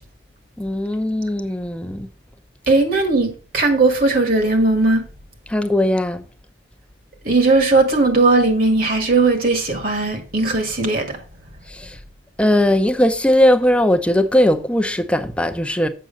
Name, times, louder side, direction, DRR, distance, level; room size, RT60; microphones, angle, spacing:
voice 1, 0.6-2.1 5.5-6.2 11.7-11.9 12.4-15.9, left 1 dB, 5° left, 0.7 m, -18 dB
voice 2, 2.7-5.0 7.2-11.2, right 3 dB, 50° right, 1.8 m, -17 dB
7.7 x 6.1 x 5.2 m
head